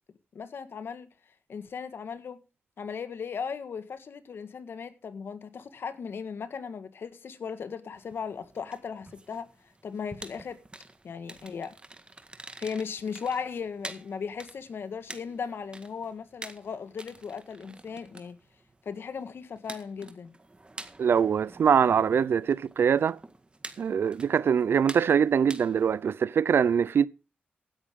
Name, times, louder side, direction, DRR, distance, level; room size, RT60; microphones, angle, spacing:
voice 1, 0.3-1.1 1.5-2.4 2.8-10.6 11.0-11.8 12.6-18.4 18.8-20.3, left 6 dB, 70° left, 1.6 m, -37 dB
sound 1, 7.9-26.0, right 2 dB, 25° right, 1.8 m, -48 dB
voice 2, 21.0-23.2 23.8-27.1, right 7 dB, 70° right, 0.6 m, -23 dB
16.0 x 10.0 x 3.7 m
cardioid pair, 65°, 4 cm